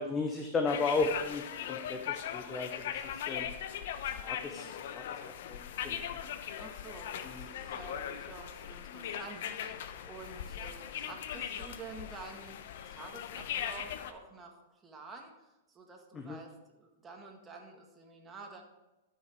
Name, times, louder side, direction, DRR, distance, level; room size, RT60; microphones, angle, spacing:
voice 1, 0.0-3.5 4.1-6.2 7.2-7.5 16.1-16.4, left 3 dB, 20° left, 4 dB, 0.8 m, -35 dB
sound 1, 0.7-14.1, left 9 dB, 65° left, 0.8 m, -39 dB
voice 2, 6.6-15.3 15.7-18.6, right 4 dB, 15° right, 1 dB, 1.7 m, -49 dB
13.0 x 6.0 x 4.5 m, 1.1 s
hypercardioid pair, 140°, 0 cm